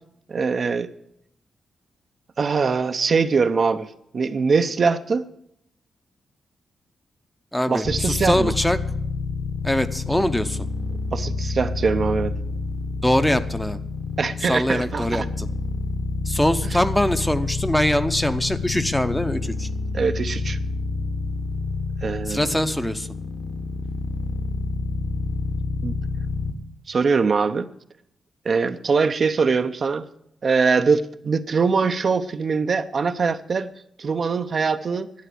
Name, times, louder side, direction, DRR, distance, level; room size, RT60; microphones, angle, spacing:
voice 1, 0.3-0.9 2.4-5.3 7.7-8.5 11.1-12.3 14.2-15.3 16.6-16.8 19.9-20.6 22.0-22.5 25.8-25.9 26.9-27.7 28.4-30.0 30.4-33.7 34.0-35.1, right 5 dB, 50° right, 9 dB, 0.6 m, -22 dB
voice 2, 7.5-8.8 9.6-10.6 13.0-13.8 14.5-15.5 16.3-19.7 22.3-23.1, left 1 dB, 5° left, 10 dB, 0.7 m, -23 dB
sound 1, 7.8-26.5, left 4 dB, 55° left, 1.3 m, -28 dB
11.5 x 9.1 x 7.7 m, 0.76 s
cardioid pair, 110°, 0 cm